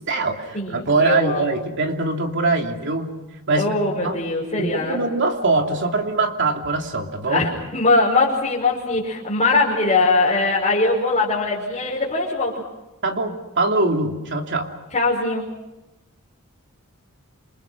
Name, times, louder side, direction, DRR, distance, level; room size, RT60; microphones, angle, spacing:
voice 1, 0.0-3.1 3.5-3.7 4.0-4.2 4.6-7.5 13.0-14.7, right 3 dB, 55° right, 3 dB, 3.0 m, -22 dB
voice 2, 0.5-1.5 3.5-5.0 7.3-12.6 14.9-15.4, left 3 dB, 30° left, -5 dB, 5.5 m, -21 dB
28.5 x 28.5 x 6.2 m, 1.0 s
head